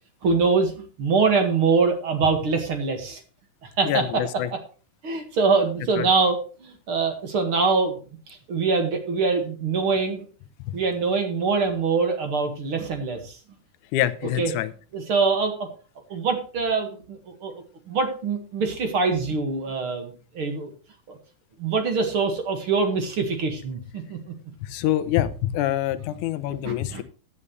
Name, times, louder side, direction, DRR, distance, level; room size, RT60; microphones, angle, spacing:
voice 1, 0.2-3.2 3.6-4.2 5.0-8.0 8.3-10.3 10.7-13.4 14.4-14.5 14.9-15.7 16.1-20.7 21.1-21.2 21.6-24.2 26.6-27.0, right 4 dB, 50° right, 5 dB, 2.4 m, -24 dB
voice 2, 3.9-4.5 6.0-6.1 10.7-10.8 13.9-14.7 24.6-27.0, left 13 dB, 80° left, 14 dB, 2.3 m, -25 dB
15.5 x 9.7 x 3.2 m, 0.36 s
omnidirectional pair, 3.5 m